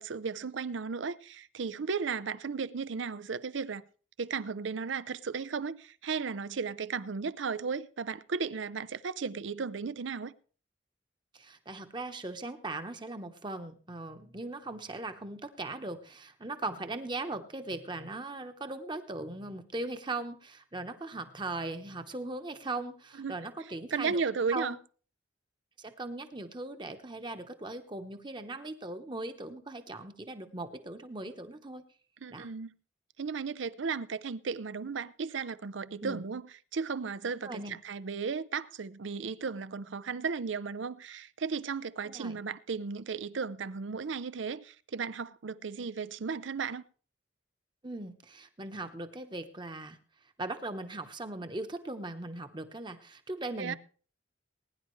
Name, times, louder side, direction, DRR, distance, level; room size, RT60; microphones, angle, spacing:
voice 1, 0.0-3.8 4.2-10.3 23.2-23.4 23.9-24.7 32.2-32.8 33.2-36.4 36.7-46.8 53.6-53.7, right 5 dB, 85° right, 0.6 m, -35 dB
voice 2, 11.3-24.2 24.5-24.8 25.8-31.8 32.3-32.5 36.0-36.2 37.4-37.8 42.0-42.4 47.8-50.0 50.4-53.8, right 2 dB, 25° right, 1.0 m, -39 dB
20.5 x 10.5 x 3.2 m
head